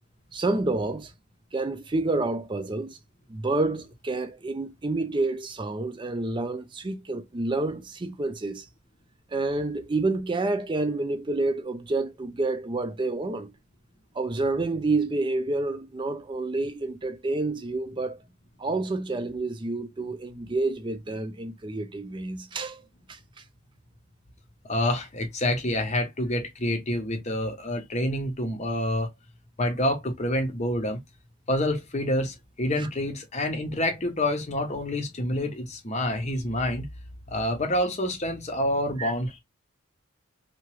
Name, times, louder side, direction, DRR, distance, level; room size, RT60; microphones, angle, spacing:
voice 1, 0.3-1.1 1.5-3.0 3.3-8.7 9.3-13.5 14.2-18.2 18.6-22.8 23.1-23.2 32.8-32.9 39.0-39.1, right 2 dB, 20° right, 0.4 m, -29 dB
voice 2, 24.6-29.1 29.6-31.0 31.5-36.9 37.3-39.4, left 1 dB, 30° left, 0.7 m, -27 dB
2.9 x 2.3 x 3.0 m
head